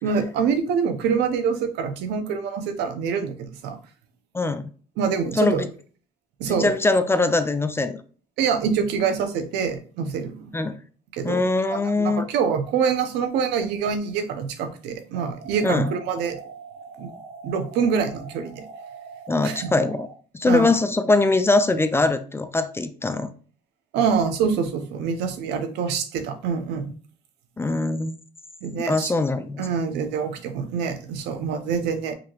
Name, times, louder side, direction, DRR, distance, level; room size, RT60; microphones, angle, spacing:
voice 1, 0.0-3.8 5.0-5.6 6.4-6.7 8.4-10.5 11.1-16.4 17.0-17.2 17.4-18.6 19.4-19.7 20.5-20.7 23.9-26.9 28.6-29.1 29.6-32.1, right 6 dB, 90° right, 8 dB, 0.7 m, -25 dB
voice 2, 4.3-4.7 5.3-5.7 6.5-8.0 10.5-10.8 11.2-12.3 15.6-15.9 19.3-20.1 20.3-23.3 27.6-28.2 28.9-29.7, left 3 dB, 15° left, 10 dB, 0.4 m, -22 dB
sound 1, 15.1-20.1, right 5 dB, 75° right, 2.0 m, -42 dB
5.0 x 2.8 x 2.9 m, 0.40 s
cardioid pair, 110°, 17 cm